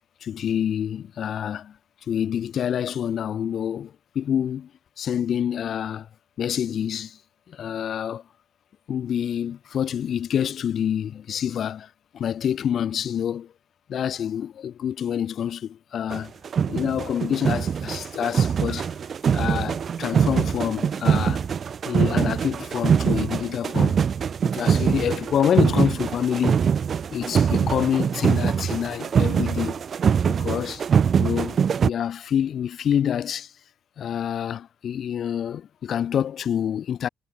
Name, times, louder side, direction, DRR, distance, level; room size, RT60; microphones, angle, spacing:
voice 1, 0.2-1.8 2.1-4.7 5.0-6.1 6.4-7.2 7.5-8.2 8.9-13.5 13.9-16.3 16.7-19.0 19.3-21.5 21.8-24.0 24.4-26.7 27.1-29.8 30.2-30.9 31.2-33.5 34.0-37.1, left 9 dB, 60° left, 5.6 m, -27 dB
sound 1, 16.1-16.2 16.4-31.9, right 7 dB, 50° right, 0.7 m, -23 dB
cardioid pair, 90°, 0 cm